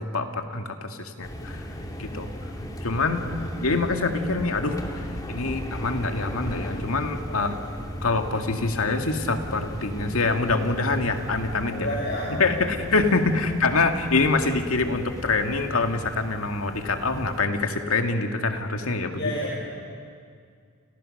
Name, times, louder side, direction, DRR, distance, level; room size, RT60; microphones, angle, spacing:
voice 1, 0.0-1.6 2.0-2.3 2.8-3.3 3.6-7.6 8.0-11.9 12.4-19.3, left 3 dB, 80° left, 5 dB, 2.1 m, -25 dB
sound 1, 1.2-17.4, equal, 20° left, 2.7 m, -36 dB
voice 2, 7.3-7.7 11.7-12.9 19.2-19.6, left 1 dB, 55° left, -4 dB, 5.8 m, -31 dB
29.5 x 29.5 x 6.6 m, 2.2 s
head